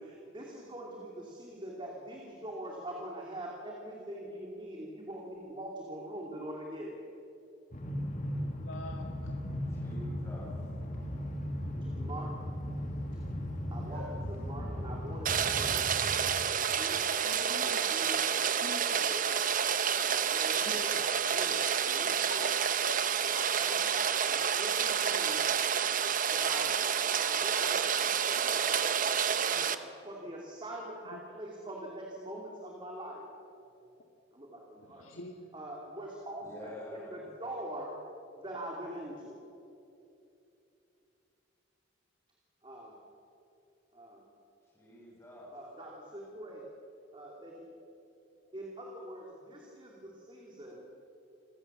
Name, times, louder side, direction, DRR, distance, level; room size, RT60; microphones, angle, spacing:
voice 1, 0.0-7.0 11.8-12.3 13.7-15.9 16.4-17.1 17.6-19.2 20.1-22.5 23.2-25.4 26.3-28.7 30.0-33.2 34.3-35.1 35.5-38.0 38.4-39.4 42.6-42.9 43.9-44.3 45.5-46.6 47.1-47.7 48.5-50.9, right 1 dB, 25° right, -2 dB, 2.8 m, -43 dB
Train, 7.7-16.6, equal, 40° left, 2.2 m, -37 dB
voice 2, 8.6-9.3 17.1-17.9 18.6-19.0 20.6-21.1 22.3-22.5 22.9-23.0 31.1-31.2 34.8-35.5, left 3 dB, 85° left, 1 dB, 1.7 m, -44 dB
voice 3, 9.7-10.5 13.8-14.2 28.3-29.0 29.5-30.1 33.6-33.7 36.4-37.2 44.7-45.5, left 1 dB, 15° left, -4 dB, 7.0 m, -48 dB
Rain, 15.2-29.8, right 7 dB, 40° right, 0.8 m, -29 dB
27.0 x 16.0 x 7.3 m, 2.8 s
head